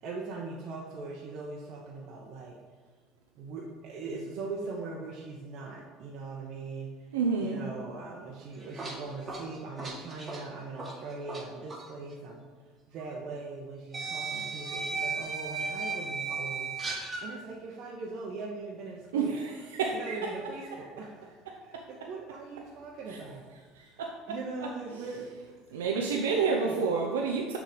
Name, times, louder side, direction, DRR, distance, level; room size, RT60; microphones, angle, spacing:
voice 1, 0.0-2.6 3.4-6.9 7.4-12.5 12.9-16.7 17.0-19.5 19.9-21.4 21.6-23.4 23.8-24.0 24.3-25.3 25.9-26.9, right 3 dB, 55° right, -3 dB, 1.0 m, -40 dB
voice 2, 7.1-7.6 19.1-20.3 23.1-23.2 23.8-24.1 25.7-27.6, right 5 dB, 90° right, 1 dB, 0.6 m, -29 dB
sound 1, 8.4-11.4 11.7-11.9 13.0-13.1 13.9-17.3, right 4 dB, 25° right, 1.7 m, -35 dB
6.6 x 3.8 x 5.0 m, 1.4 s
hypercardioid pair, 80°, 0 cm